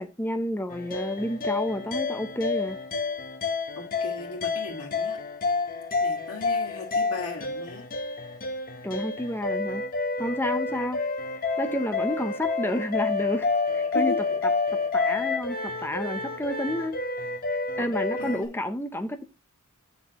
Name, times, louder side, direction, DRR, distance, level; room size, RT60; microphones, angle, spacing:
voice 1, 0.0-2.8 8.8-9.8 10.2-11.0 11.4-14.5 14.9-17.0 17.5-19.2, left 1 dB, 10° left, 0.7 m, -30 dB
sound 1, 0.7-18.5, left 3 dB, 40° left, 1.0 m, -29 dB
voice 2, 3.8-5.2 6.0-7.8 13.9-14.4 17.8-17.9 18.2-18.7, left 3 dB, 75° left, 2.0 m, -37 dB
7.6 x 6.0 x 2.9 m
head